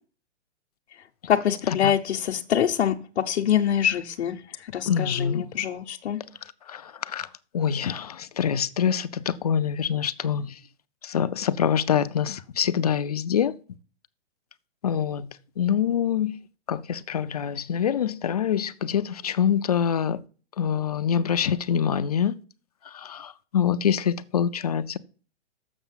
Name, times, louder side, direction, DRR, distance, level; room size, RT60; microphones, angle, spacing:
voice 1, 1.3-2.9 3.3-4.4 4.7-6.2, left 9 dB, 70° left, 0.9 m, -24 dB
voice 2, 4.9-5.4 6.7-7.3 7.5-10.6 11.0-13.6 14.8-15.3 15.6-16.4 16.7-20.2 20.6-22.3 22.9-25.0, left 8 dB, 35° left, 0.4 m, -25 dB
7.0 x 6.3 x 7.3 m
hypercardioid pair, 165°, 33 cm